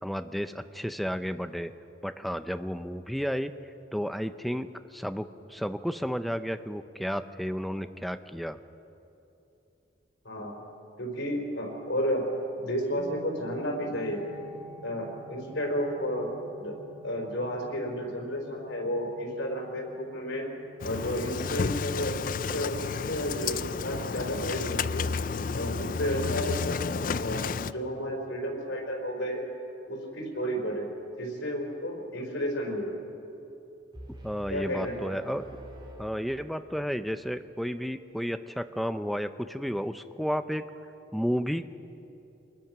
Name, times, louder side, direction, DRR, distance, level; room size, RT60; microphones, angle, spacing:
voice 1, 0.0-1.7 2.0-3.5 3.9-8.6 34.2-35.5 36.0-40.6 41.1-41.8, equal, ahead, 10 dB, 0.6 m, -32 dB
voice 2, 10.2-10.6 11.0-12.3 12.6-14.2 14.8-16.3 16.6-16.7 17.0-20.5 20.8-25.1 25.5-26.8 27.2-29.4 29.9-30.9 31.2-32.9 34.5-35.2, equal, 90° left, 0 dB, 4.7 m, -32 dB
sound 1, 12.9-25.6, right 2 dB, 60° right, 4.1 m, -51 dB
Engine starting, 20.8-27.7, left 5 dB, 45° left, 0.4 m, -31 dB
sound 2, 33.9-36.9, equal, 25° right, 3.5 m, -47 dB
25.5 x 20.5 x 6.0 m, 2.9 s
head